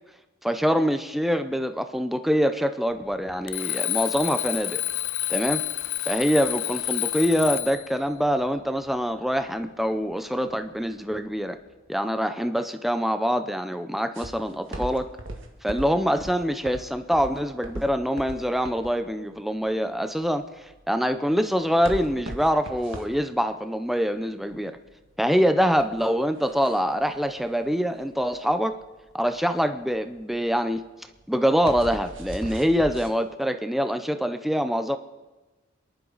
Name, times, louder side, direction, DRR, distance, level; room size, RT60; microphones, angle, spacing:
voice 1, 0.4-4.8 5.3-5.6 6.1-11.6 11.9-15.1 15.6-20.5 20.9-24.7 25.2-28.8 29.1-30.8 31.3-35.0, equal, ahead, 8 dB, 0.5 m, -25 dB
sound 1, 2.9-11.9, left 1 dB, 45° left, 4.8 m, -56 dB
Alarm, 3.5-7.9, left 16 dB, 75° left, 0.5 m, -29 dB
sound 2, 14.1-33.1, right 1 dB, 70° right, 1.7 m, -40 dB
28.0 x 11.0 x 4.0 m, 1.2 s
head